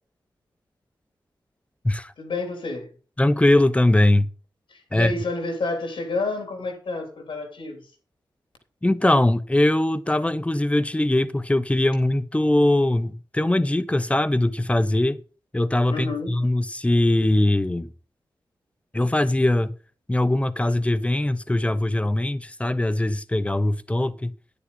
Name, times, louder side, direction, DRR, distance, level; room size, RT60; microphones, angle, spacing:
voice 1, 2.2-2.9 4.7-7.9 15.9-16.4, left 3 dB, 85° left, 3.5 m, -29 dB
voice 2, 3.2-4.3 4.9-5.1 8.8-15.2 15.5-17.9 18.9-19.7 20.1-24.3, left 1 dB, 15° left, 1.0 m, -21 dB
10.0 x 10.0 x 4.1 m
wide cardioid pair, 75°, 8 cm